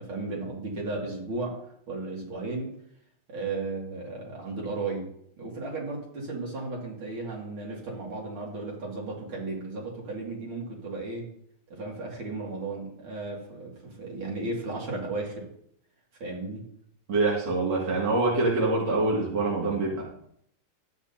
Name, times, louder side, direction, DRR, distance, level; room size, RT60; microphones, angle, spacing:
voice 1, 0.0-1.6 1.9-2.7 3.3-5.1 5.4-11.3 11.7-15.5 16.2-16.6, right 3 dB, 75° right, -3 dB, 3.2 m, -34 dB
voice 2, 17.1-20.0, right 3 dB, 55° right, -4 dB, 2.8 m, -25 dB
13.5 x 8.5 x 2.8 m, 0.68 s
omnidirectional pair, 2.3 m